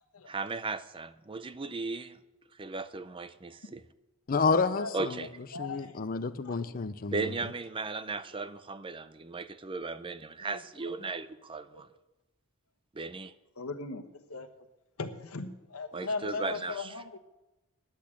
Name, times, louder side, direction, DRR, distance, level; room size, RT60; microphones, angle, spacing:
voice 1, 0.3-2.2 2.6-3.8 4.9-5.3 7.1-11.9 12.9-13.3 15.9-17.0, right 3 dB, 25° right, 0.5 m, -36 dB
voice 2, 4.3-5.2 5.6-7.3, left 4 dB, 40° left, 0.5 m, -29 dB
voice 3, 5.5-5.9 13.6-14.0 14.3-14.5 15.0-17.2, left 3 dB, 90° left, 1.1 m, -37 dB
10.5 x 8.4 x 8.6 m
head